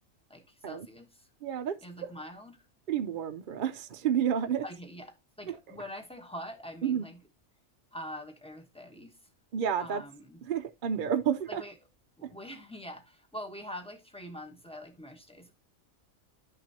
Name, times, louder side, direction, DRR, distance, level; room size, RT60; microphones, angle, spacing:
voice 1, 0.3-1.3 1.8-2.6 4.6-7.2 7.9-9.2 9.8-10.4 11.5-11.7 12.2-15.5, equal, 5° left, 1.1 m, -44 dB
voice 2, 1.4-2.1 2.9-4.6 5.5-5.6 6.8-7.0 9.5-10.0 10.5-11.6 12.2-12.3, right 8 dB, 55° right, 0.6 m, -30 dB
10.5 x 5.9 x 2.8 m
omnidirectional pair, 1.4 m